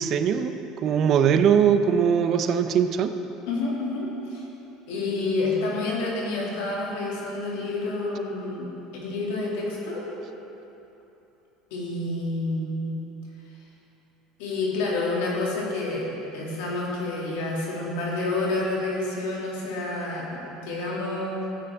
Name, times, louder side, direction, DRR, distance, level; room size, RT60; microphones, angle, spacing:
voice 1, 0.0-3.2, right 7 dB, 50° right, 9 dB, 0.6 m, -21 dB
voice 2, 3.5-4.5 4.9-10.1 11.7-12.9 14.4-21.6, left 2 dB, 75° left, -4 dB, 2.4 m, -29 dB
13.5 x 8.8 x 3.5 m, 3.0 s
hypercardioid pair, 80°, 0 cm